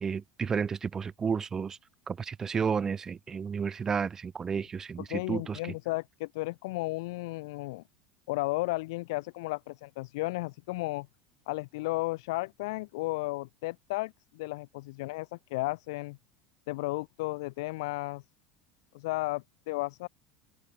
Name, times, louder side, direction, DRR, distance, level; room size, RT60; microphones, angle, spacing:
voice 1, 0.0-1.8 2.1-5.6, right 6 dB, 25° right, 0.6 m, -32 dB
voice 2, 5.1-7.8 8.3-11.1 11.5-16.2 16.7-18.2 18.9-20.1, left 22 dB, 80° left, 0.3 m, -34 dB
open air
supercardioid pair, 120°, 2 cm